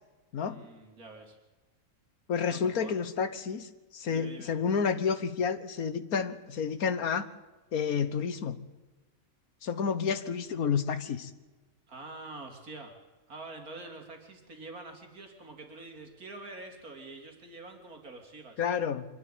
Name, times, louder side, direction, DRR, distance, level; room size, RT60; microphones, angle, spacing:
voice 1, 0.4-1.4 2.5-3.0 4.1-4.5 11.9-13.0 13.3-18.6, right 2 dB, 80° right, 3.5 m, -46 dB
voice 2, 2.3-7.3 7.7-8.6 9.6-11.3 18.6-19.0, left 6 dB, 80° left, 1.7 m, -30 dB
24.5 x 12.5 x 9.2 m
omnidirectional pair, 1.5 m